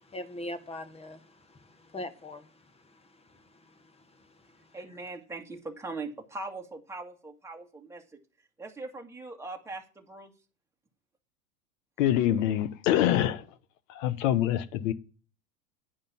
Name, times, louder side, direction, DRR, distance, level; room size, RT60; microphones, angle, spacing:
voice 1, 0.0-4.7, left 1 dB, 15° left, 1.4 m, -43 dB
voice 2, 4.7-8.2 8.6-10.3, right 3 dB, 5° right, 1.9 m, -41 dB
voice 3, 12.0-13.4 13.9-14.9, left 12 dB, 60° left, 1.1 m, -25 dB
10.0 x 5.3 x 7.1 m
hypercardioid pair, 100°, 41 cm